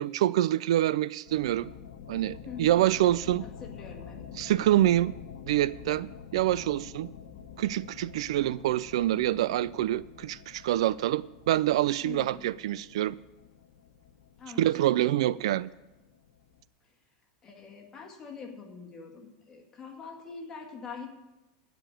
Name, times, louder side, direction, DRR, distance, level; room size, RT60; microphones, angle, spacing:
voice 1, 0.0-1.7 2.1-3.4 4.4-5.1 5.5-7.1 7.6-13.1 14.6-15.7, right 13 dB, 85° right, 0.4 m, -26 dB
sound 1, 1.3-16.6, left 8 dB, 75° left, 1.1 m, -48 dB
voice 2, 2.4-3.0 3.4-4.3 12.0-12.5 14.4-14.8 16.8-17.0 17.4-21.1, left 5 dB, 20° left, 2.0 m, -44 dB
15.0 x 5.1 x 9.1 m
supercardioid pair, 165°, 3 cm